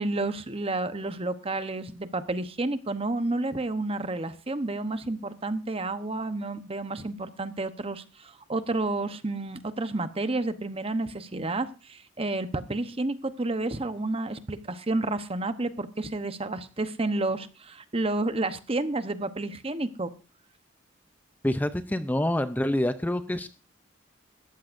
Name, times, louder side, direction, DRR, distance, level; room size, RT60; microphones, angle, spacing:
voice 1, 0.0-20.1, right 2 dB, 30° right, 11 dB, 1.0 m, -30 dB
voice 2, 21.4-23.5, left 1 dB, 10° left, 10 dB, 0.6 m, -26 dB
19.0 x 14.0 x 2.6 m, 0.34 s
head